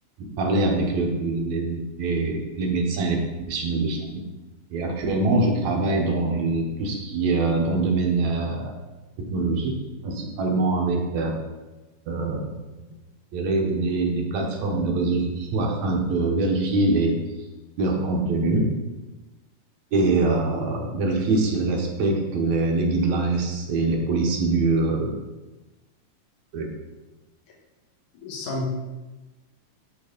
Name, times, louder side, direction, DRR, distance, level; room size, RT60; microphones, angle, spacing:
voice 1, 0.4-3.2 3.5-4.2 4.7-8.7 9.2-9.8 10.0-11.4 12.1-12.5 13.3-17.2 17.8-18.7 19.9-25.1 26.5-26.7, right 3 dB, 70° right, 0 dB, 2.5 m, -24 dB
voice 2, 28.2-28.7, left 2 dB, 85° left, -2 dB, 3.1 m, -30 dB
11.5 x 4.1 x 5.1 m, 1.1 s
omnidirectional pair, 3.4 m